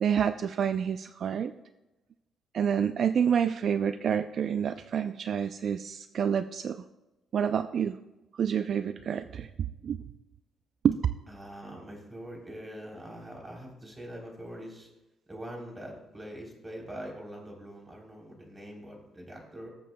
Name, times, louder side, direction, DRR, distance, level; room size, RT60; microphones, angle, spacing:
voice 1, 0.0-1.5 2.5-6.8 7.3-8.0 8.3-9.5 9.8-10.0 10.8-11.0, right 8 dB, 60° right, 11 dB, 0.4 m, -28 dB
voice 2, 11.3-14.9 15.3-19.7, equal, 15° right, 0 dB, 3.4 m, -43 dB
20.5 x 7.5 x 2.2 m, 1.0 s
cardioid pair, 90°, 0 cm